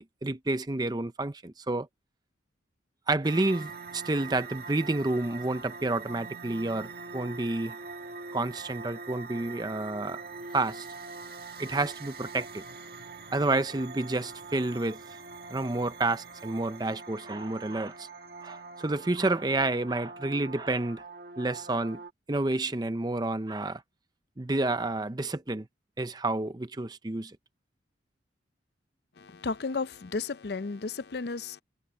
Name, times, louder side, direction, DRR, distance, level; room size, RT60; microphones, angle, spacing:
voice 1, 0.0-1.9 3.1-7.7 8.3-10.2 10.5-10.9 11.6-12.6 13.3-15.0 15.5-18.1 18.4-21.0 21.4-22.0 22.3-23.8 24.4-25.7 26.0-27.4, right 2 dB, 20° right, 0.6 m, -30 dB
sound 1, 3.2-22.1, right 4 dB, 55° right, 1.9 m, -43 dB
voice 2, 29.2-31.6, left 4 dB, 60° left, 0.5 m, -33 dB
head